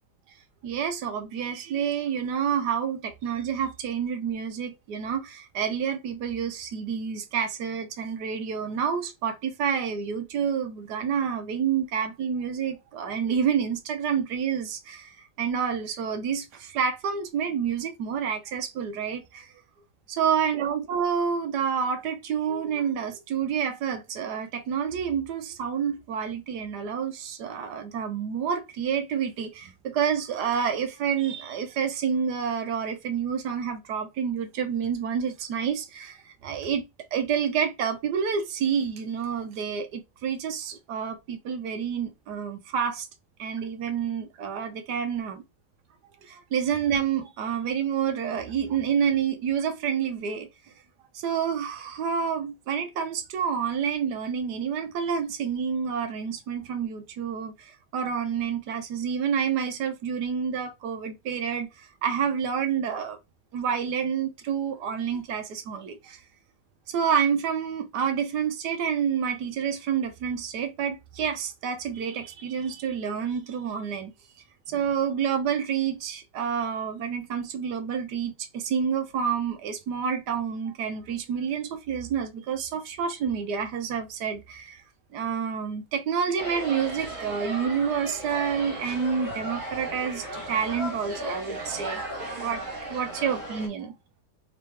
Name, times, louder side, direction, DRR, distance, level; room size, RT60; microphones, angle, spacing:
voice 1, 0.6-19.5 20.1-43.1 43.4-45.4 46.2-50.5 51.1-63.2 63.5-66.2 66.9-74.1 74.7-84.8 85.1-92.0 92.4-92.6 92.9-93.9, right 7 dB, 75° right, 1.2 m, -28 dB
sound 1, 86.4-93.7, right 1 dB, 45° right, 1.7 m, -36 dB
3.7 x 3.0 x 3.3 m
omnidirectional pair, 1.9 m